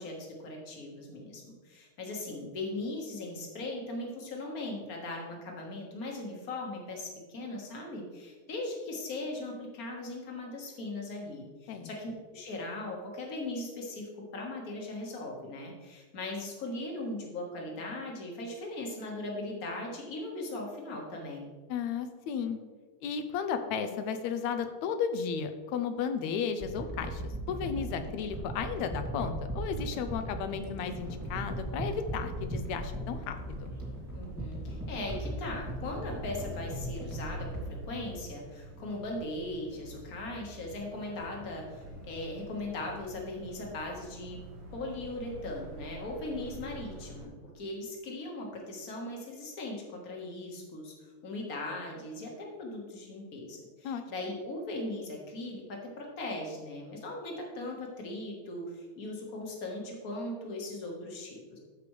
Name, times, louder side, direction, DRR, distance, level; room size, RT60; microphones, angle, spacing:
voice 1, 0.0-21.5 34.1-44.4 44.7-50.9 51.2-61.6, left 2 dB, 40° left, 0 dB, 1.4 m, -39 dB
voice 2, 21.7-22.6 23.0-27.2 27.5-33.6 53.8-54.0, left 6 dB, 80° left, 8 dB, 1.9 m, -34 dB
sound 1, 26.6-38.8 39.4-39.5, right 1 dB, 5° right, 1.5 m, -38 dB
sound 2, 30.8-47.3, right 1 dB, 80° right, 4.5 m, -47 dB
13.5 x 5.0 x 3.2 m, 1.4 s
omnidirectional pair, 3.4 m